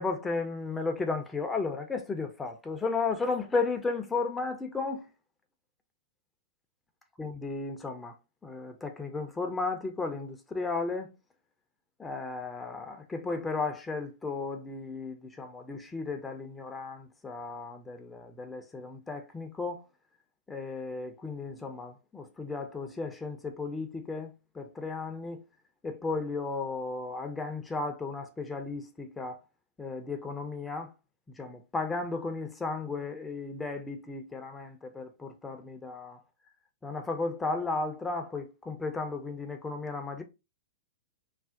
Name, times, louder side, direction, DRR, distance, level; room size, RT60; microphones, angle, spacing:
voice 1, 0.0-5.0 7.2-8.1 8.4-11.1 12.0-19.8 20.5-25.4 25.8-29.4 29.8-30.9 31.4-36.2 36.8-40.2, left 3 dB, 10° left, 0.5 m, -34 dB
2.5 x 2.0 x 3.6 m
figure-of-eight pair, 105°, 0 cm